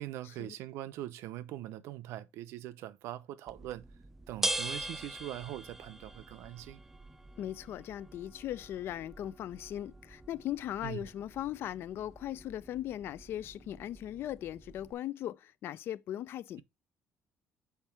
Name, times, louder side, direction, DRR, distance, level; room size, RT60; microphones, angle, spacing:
voice 1, 0.0-3.9 4.3-6.8 10.8-11.1, right 13 dB, 90° right, 0.6 m, -42 dB
sound 1, 3.5-14.9, right 1 dB, 5° right, 0.4 m, -43 dB
voice 2, 7.4-16.6, left 12 dB, 60° left, 0.4 m, -39 dB
5.8 x 4.4 x 4.5 m
cardioid pair, 140°, 4 cm